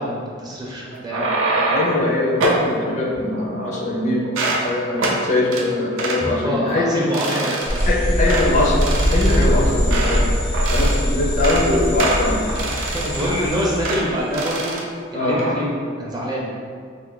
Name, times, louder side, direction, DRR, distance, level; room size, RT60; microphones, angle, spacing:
voice 1, 0.0-1.8 3.1-3.2 6.2-7.9 8.3-8.7 12.6-14.8 15.1-16.5, equal, 20° right, -4 dB, 0.4 m, -26 dB
sound 1, 0.9-2.0 2.4-2.7 3.3-3.9 4.2-4.7 5.0-5.2 5.5-5.7 6.0-6.2 6.7-6.8 7.1-7.9 8.3-8.5 8.8-10.3 10.5-11.0 11.3-11.7 12.0-13.4 13.8-14.0 14.3-14.8 15.2-15.5, right 3 dB, 85° right, 0.5 m, -25 dB
voice 2, 1.7-4.2 4.6-7.0 7.3-7.6 7.9-8.8 9.1-10.3 10.7-12.4 12.7-12.9 13.3-13.4 15.1-15.4, left 2 dB, 35° left, -2 dB, 0.4 m, -22 dB
sound 2, 7.6-14.7, left 1 dB, 70° left, 0.8 m, -32 dB
sound 3, 7.7-14.3, equal, 85° left, 1.1 m, -21 dB
2.9 x 2.4 x 3.7 m, 2.1 s
head